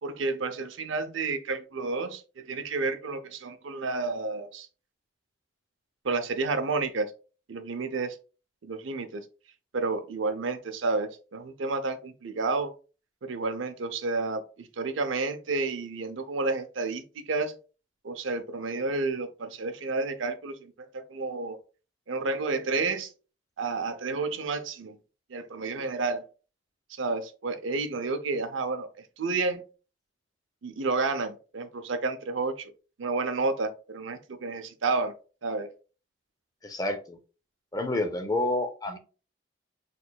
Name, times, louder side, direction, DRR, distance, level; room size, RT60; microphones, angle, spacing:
voice 1, 0.0-4.7 6.0-7.1 7.5-8.2 8.6-9.2 9.7-12.7 13.2-17.5 18.0-21.6 22.1-23.1 23.6-25.0 25.3-26.2 26.9-28.9 29.2-29.6 30.6-32.7 33.0-35.1 35.4-35.7, right 3 dB, 85° right, 0.6 m, -30 dB
voice 2, 36.6-37.2 37.7-39.0, left 2 dB, 20° left, 0.6 m, -29 dB
6.2 x 3.2 x 2.2 m
head